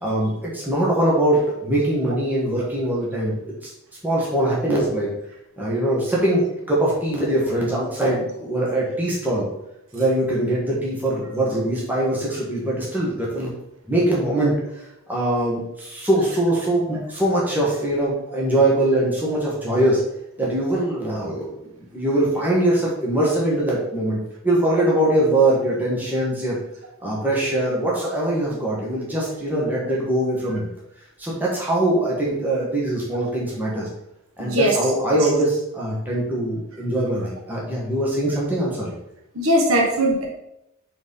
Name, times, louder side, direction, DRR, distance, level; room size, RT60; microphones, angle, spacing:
voice 1, 0.0-3.7 4.0-5.1 5.6-6.4 6.7-9.5 9.9-13.5 13.9-20.0 20.4-21.7 21.9-26.6 27.0-30.7 31.2-33.9 34.4-38.9, right 1 dB, 10° right, -5 dB, 1.5 m, -22 dB
voice 2, 34.4-34.8 39.3-40.2, right 1 dB, 75° right, -1 dB, 1.5 m, -19 dB
4.6 x 4.2 x 5.5 m, 0.83 s
head